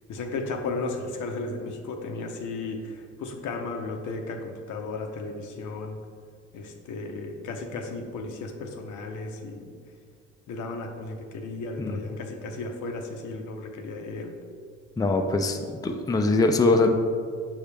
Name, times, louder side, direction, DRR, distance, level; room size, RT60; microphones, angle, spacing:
voice 1, 0.1-6.0 6.5-9.7 10.5-14.3, left 3 dB, 80° left, 3 dB, 0.8 m, -34 dB
voice 2, 15.0-16.9, left 2 dB, 10° left, 5 dB, 0.4 m, -22 dB
6.3 x 5.0 x 3.4 m, 2.1 s
cardioid pair, 90°, 30 cm